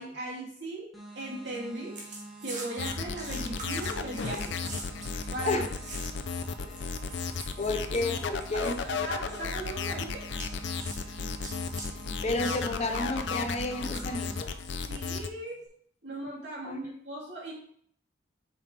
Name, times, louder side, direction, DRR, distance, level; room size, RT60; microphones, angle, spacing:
voice 1, 0.0-2.0 2.4-4.6 5.3-5.6 8.5-8.6 9.0-10.3 14.9-15.6 16.0-17.5, right 1 dB, 70° right, -5 dB, 3.0 m, -37 dB
sound 1, 0.9-14.4, right 2 dB, ahead, 1.7 m, -47 dB
sound 2, 1.9-6.4 6.8-8.8 9.1-9.4 10.4-11.9 12.3-12.6 13.6-14.9 15.5-15.7, right 2 dB, 45° right, 1.7 m, -44 dB
sound 3, 2.8-15.3, left 5 dB, 75° left, 0.5 m, -34 dB
voice 2, 7.6-8.8 12.2-14.5 16.6-16.8, left 2 dB, 35° left, 6 dB, 0.7 m, -31 dB
7.7 x 5.1 x 3.3 m, 0.63 s
head